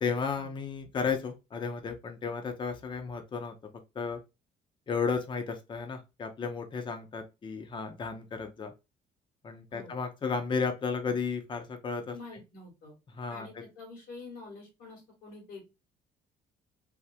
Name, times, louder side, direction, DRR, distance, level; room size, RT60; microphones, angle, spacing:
voice 1, 0.0-3.5 4.0-4.2 4.9-8.7 9.4-12.2 13.1-13.5, left 5 dB, 30° left, 0.6 m, -33 dB
voice 2, 12.1-13.0 13.3-15.7, left 3 dB, 90° left, 1.9 m, -47 dB
3.4 x 2.1 x 2.6 m
cardioid pair, 110°, 17 cm